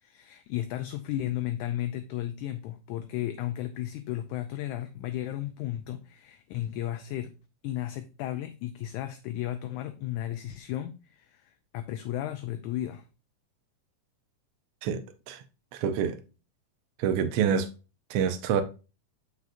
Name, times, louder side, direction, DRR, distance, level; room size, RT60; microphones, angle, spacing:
voice 1, 0.0-7.4 7.6-13.0, left 13 dB, 80° left, 1.9 m, -34 dB
voice 2, 15.7-16.2 17.0-17.7 18.1-18.6, right 7 dB, 90° right, 1.3 m, -26 dB
6.5 x 6.3 x 2.6 m
omnidirectional pair, 3.7 m